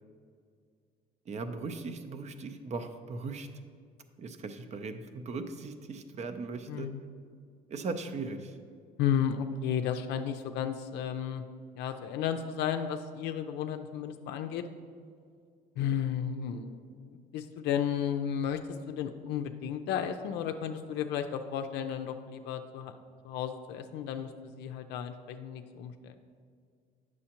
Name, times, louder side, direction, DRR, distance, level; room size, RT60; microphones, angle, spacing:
voice 1, 1.3-3.5 4.2-6.9 7.7-8.6, right 3 dB, 40° right, 9 dB, 0.6 m, -38 dB
voice 2, 6.7-7.0 9.0-11.4 11.8-14.6 15.8-18.6 18.9-22.9 23.2-26.1, left 8 dB, 85° left, 7 dB, 0.4 m, -33 dB
8.5 x 6.2 x 2.9 m, 2.2 s
cardioid pair, 110°, 17 cm